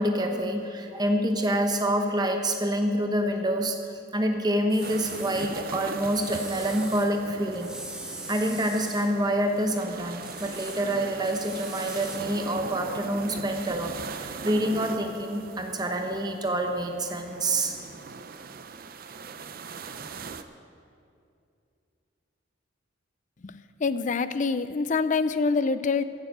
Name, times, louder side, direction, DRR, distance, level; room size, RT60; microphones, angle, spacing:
voice 1, 0.0-3.8 4.1-7.8 8.3-17.8, right 1 dB, 20° right, 4 dB, 0.8 m, -27 dB
sound 1, 4.7-5.5 6.1-7.1 7.5-9.1 10.2-12.2, right 1 dB, 5° right, 1.1 m, -41 dB
sound 2, 4.8-20.4, right 4 dB, 50° right, 0.5 m, -40 dB
voice 2, 23.4-26.0, left 4 dB, 40° left, 13 dB, 0.4 m, -26 dB
14.5 x 6.9 x 8.0 m, 2.5 s
head